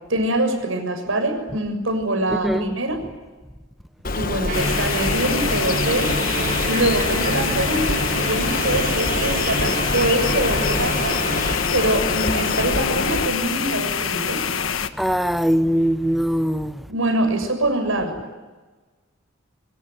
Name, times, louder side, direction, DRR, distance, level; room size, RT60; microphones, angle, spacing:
voice 1, 0.1-3.0 4.1-6.1 6.7-11.2 11.7-14.4 16.9-18.4, right 1 dB, 80° right, 7.0 m, -24 dB
voice 2, 2.4-2.7 15.0-16.7, equal, ahead, 0.9 m, -21 dB
Bird, 4.0-13.3, left 3 dB, 45° left, 1.4 m, -26 dB
sound 1, 4.5-14.9, left 7 dB, 75° left, 1.5 m, -26 dB
sound 2, 4.5-11.6, right 4 dB, 40° right, 1.4 m, -29 dB
25.0 x 25.0 x 9.2 m
head